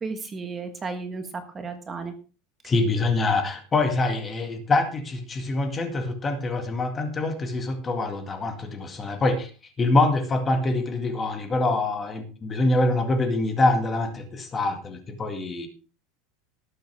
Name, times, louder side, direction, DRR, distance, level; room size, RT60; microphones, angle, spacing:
voice 1, 0.0-2.1, right 4 dB, 20° right, 7 dB, 1.4 m, -33 dB
voice 2, 2.6-9.5 9.8-15.7, left 2 dB, 20° left, 6 dB, 2.0 m, -25 dB
19.0 x 7.9 x 3.5 m, 0.35 s
supercardioid pair, 150°, 0 cm